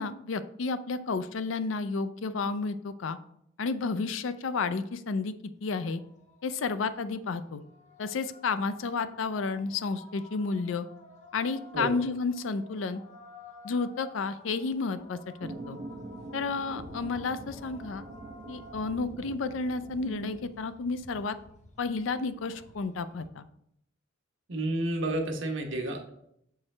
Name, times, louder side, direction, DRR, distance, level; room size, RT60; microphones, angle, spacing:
voice 1, 0.0-3.2 3.6-5.3 5.6-6.0 6.4-7.6 8.0-10.9 11.3-13.0 13.6-15.8 16.3-18.0 18.5-21.4 21.8-23.5, left 4 dB, 80° left, 12 dB, 0.4 m, -31 dB
sound 1, 5.7-23.3, left 2 dB, 40° left, 0.9 m, -52 dB
sound 2, 15.4-20.5, right 2 dB, 30° right, 0.4 m, -44 dB
voice 2, 24.5-26.1, right 1 dB, 70° right, 3 dB, 1.1 m, -30 dB
7.2 x 4.6 x 3.2 m, 0.73 s
head